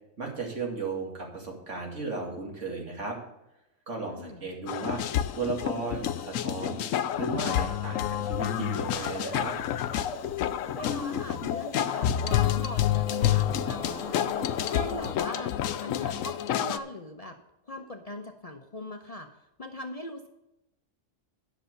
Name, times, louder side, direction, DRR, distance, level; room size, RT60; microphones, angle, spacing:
voice 1, 0.2-3.2 3.9-5.0 5.3-6.8 7.1-9.5, right 3 dB, 65° right, 0 dB, 2.7 m, -35 dB
voice 2, 4.1-4.5 10.7-14.3 14.6-15.5 15.8-17.4 17.7-20.3, left 1 dB, 35° left, 4 dB, 0.7 m, -40 dB
sound 1, 4.7-16.8, left 10 dB, 90° left, 1.0 m, -29 dB
sound 2, 8.3-15.2, left 5 dB, 55° left, 1.2 m, -39 dB
10.5 x 6.3 x 6.5 m, 0.91 s
omnidirectional pair, 1.3 m